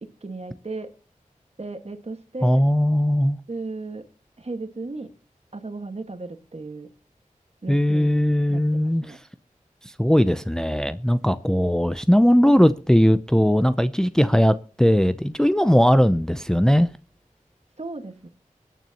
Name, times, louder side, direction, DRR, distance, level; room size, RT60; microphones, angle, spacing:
voice 1, 0.0-0.9 1.6-2.6 3.5-4.1 4.4-5.1 5.5-6.9 7.6-8.2 8.5-9.2 17.8-18.3, right 3 dB, 50° right, 1.7 m, -35 dB
voice 2, 2.4-3.4 7.7-9.0 9.8-16.9, equal, 5° left, 0.6 m, -19 dB
24.0 x 9.2 x 2.9 m
wide cardioid pair, 55°, 14 cm